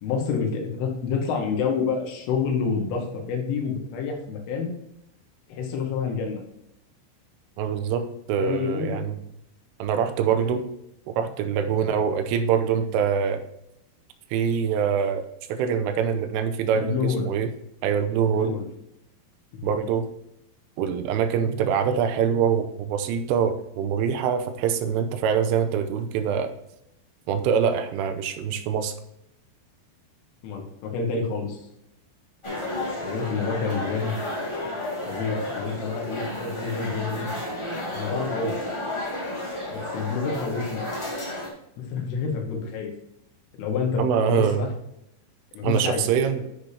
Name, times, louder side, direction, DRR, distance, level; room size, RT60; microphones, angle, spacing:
voice 1, 0.0-4.7 5.5-6.4 8.4-9.0 11.7-11.8 16.8-17.3 18.3-18.7 19.6-19.8 30.4-31.6 33.0-34.1 35.1-37.3 37.9-38.6 39.7-40.8 41.8-42.9 43.6-44.7 45.5-46.1 46.4-46.5, left 5 dB, 80° left, 1 dB, 4.1 m, -28 dB
voice 2, 7.6-9.2 9.8-10.7 11.1-13.4 14.3-17.5 17.8-18.6 19.6-20.1 20.8-26.5 27.3-28.9 44.0-44.7 45.6-46.4, right 7 dB, 90° right, 8 dB, 3.3 m, -24 dB
sound 1, 32.4-41.5, left 1 dB, 25° left, 0.6 m, -32 dB
10.5 x 6.7 x 2.9 m, 0.81 s
omnidirectional pair, 5.7 m